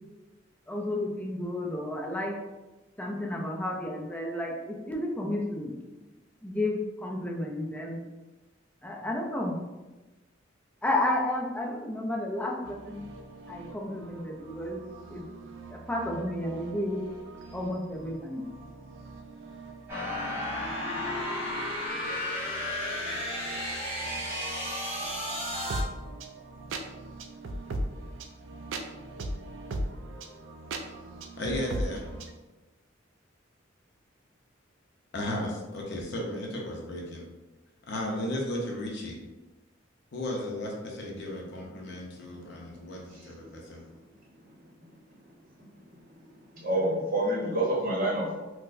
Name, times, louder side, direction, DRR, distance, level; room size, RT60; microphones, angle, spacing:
voice 1, 0.7-2.3 3.0-5.7 6.4-8.0 8.8-9.6 10.8-13.1 13.5-14.8 15.1-15.2 15.7-17.0 17.5-18.4, left 1 dB, 5° left, -1 dB, 0.4 m, -32 dB
sound 1, 12.6-32.3, right 1 dB, 70° right, 0.3 m, -40 dB
sound 2, 19.9-25.8, left 1 dB, 10° right, 1.2 m, -33 dB
voice 2, 31.4-32.0 35.1-37.3 37.9-39.2 40.1-43.8, left 1 dB, 60° left, -1 dB, 0.5 m, -35 dB
voice 3, 46.6-48.4, right 1 dB, 45° right, -3 dB, 0.8 m, -27 dB
4.3 x 2.0 x 2.5 m, 1.1 s
head